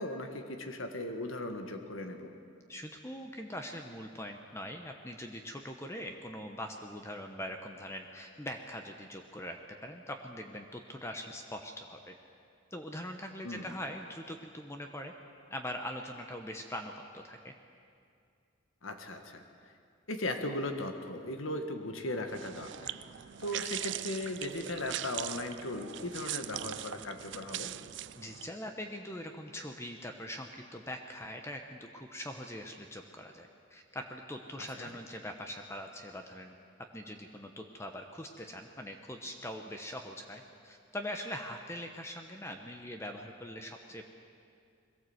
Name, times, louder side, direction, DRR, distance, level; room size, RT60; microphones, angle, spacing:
voice 1, 0.0-2.3 13.4-13.7 18.8-19.4 20.1-22.9 23.4-27.7 34.6-34.9, left 1 dB, 80° left, 6 dB, 1.6 m, -37 dB
voice 2, 2.7-12.1 12.7-15.1 15.5-17.5 28.2-36.5 36.9-44.0, left 1 dB, 15° left, 4 dB, 0.9 m, -42 dB
sound 1, 22.3-28.5, right 12 dB, 60° right, 0.4 m, -41 dB
22.0 x 17.0 x 8.0 m, 2.4 s
head